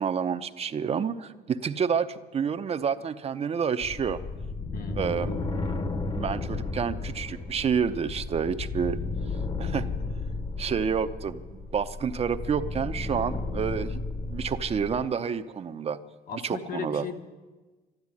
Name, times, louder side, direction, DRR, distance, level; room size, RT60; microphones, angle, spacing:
voice 1, 0.0-4.2 5.0-5.3 6.1-9.0 9.6-9.9 10.6-14.0 14.3-16.0 16.4-17.0, right 7 dB, 35° right, 9 dB, 0.7 m, -29 dB
sound 1, 3.8-15.1, left 3 dB, 30° left, 1.2 m, -33 dB
voice 2, 4.7-5.1 16.3-17.2, left 6 dB, 55° left, 6 dB, 1.5 m, -37 dB
12.5 x 12.0 x 9.7 m, 1.3 s
cardioid pair, 110°, 17 cm